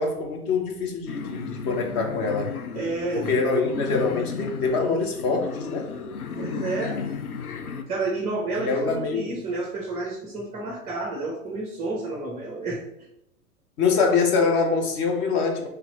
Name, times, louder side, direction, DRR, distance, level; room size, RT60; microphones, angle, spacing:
voice 1, 0.0-2.5 3.1-5.9 8.6-9.3 13.8-15.7, left 4 dB, 20° left, 2 dB, 0.5 m, -24 dB
sound 1, 1.1-7.8, left 5 dB, 80° left, 0.6 m, -34 dB
voice 2, 2.7-3.4 6.4-7.0 7.9-12.8, right 3 dB, 15° right, -3 dB, 0.7 m, -30 dB
4.2 x 2.6 x 4.0 m, 0.76 s
figure-of-eight pair, 105°, 44 cm